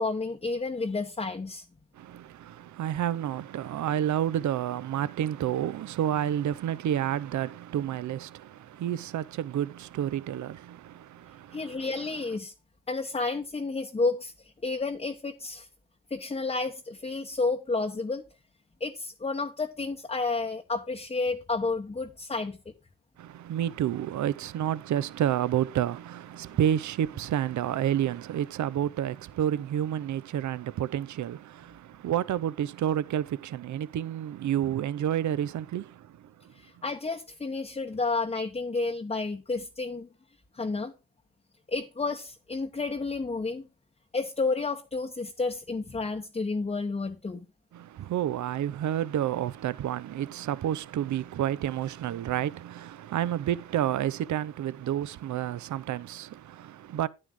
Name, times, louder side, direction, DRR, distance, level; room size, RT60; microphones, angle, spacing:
voice 1, 0.0-1.6 11.5-12.5 12.9-14.3 14.6-15.7 16.1-18.2 18.8-22.6 36.6-40.1 40.6-40.9 41.7-43.7 44.1-47.4, left 3 dB, 20° left, 1.0 m, -31 dB
voice 2, 2.0-11.9 23.2-36.5 47.7-57.1, right 11 dB, 55° right, 0.7 m, -30 dB
9.8 x 9.6 x 3.6 m
cardioid pair, 85°, 35 cm